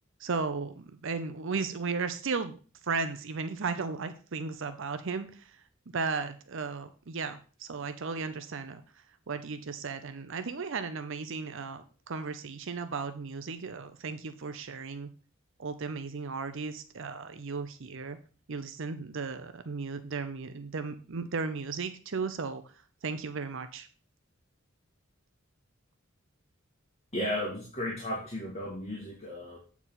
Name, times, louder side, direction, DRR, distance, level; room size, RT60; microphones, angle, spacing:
voice 1, 0.2-2.6 2.8-5.6 5.9-8.8 9.3-15.1 15.6-18.2 18.5-22.6 23.0-23.9, right 4 dB, 65° right, 9 dB, 0.6 m, -35 dB
voice 2, 27.1-29.6, left 1 dB, 30° left, -3 dB, 2.3 m, -34 dB
8.2 x 4.8 x 5.7 m, 0.39 s
head